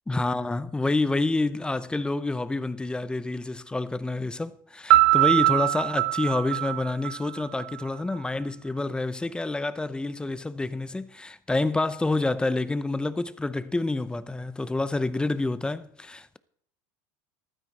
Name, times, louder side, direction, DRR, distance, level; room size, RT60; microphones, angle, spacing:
voice 1, 0.1-16.4, left 2 dB, 10° left, 0.7 m, -28 dB
Piano, 4.9-7.7, right 18 dB, 85° right, 0.6 m, -22 dB
14.0 x 12.5 x 4.1 m
supercardioid pair, 105°, 10 cm